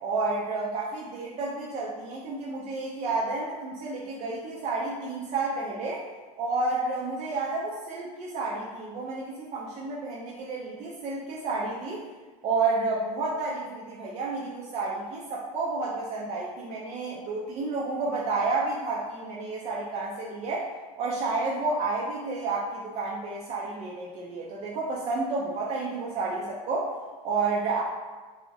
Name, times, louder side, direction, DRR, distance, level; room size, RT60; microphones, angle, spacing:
voice 1, 0.0-6.0 6.4-12.0 12.4-20.7 21.0-26.9 27.2-27.8, right 3 dB, 35° right, -5 dB, 0.4 m, -30 dB
2.6 x 2.0 x 2.6 m, 1.3 s
hypercardioid pair, 95°, 19 cm